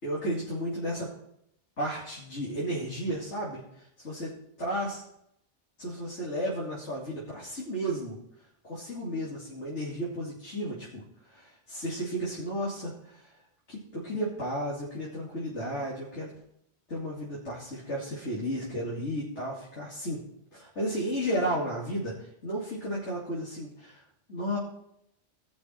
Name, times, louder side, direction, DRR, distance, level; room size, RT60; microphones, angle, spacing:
voice 1, 0.0-1.1 1.8-4.3 4.6-5.0 5.8-8.2 8.6-13.3 13.7-16.3 16.9-20.2 20.5-24.0 24.3-24.6, equal, 80° left, -5 dB, 3.1 m, -33 dB
18.5 x 6.4 x 4.6 m, 0.75 s
omnidirectional pair, 1.2 m